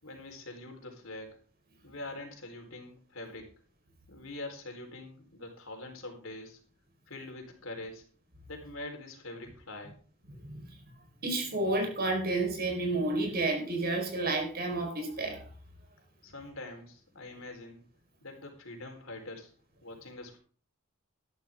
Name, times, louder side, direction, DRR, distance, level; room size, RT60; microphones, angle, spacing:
voice 1, 0.0-1.4 1.8-3.5 4.1-6.6 7.1-8.0 8.5-10.0 16.2-17.8 18.2-19.5 19.8-20.4, left 2 dB, 65° left, 3 dB, 4.1 m, -44 dB
voice 2, 11.2-15.5, right 2 dB, 45° right, 3 dB, 4.6 m, -30 dB
13.0 x 12.0 x 3.7 m, 0.40 s
head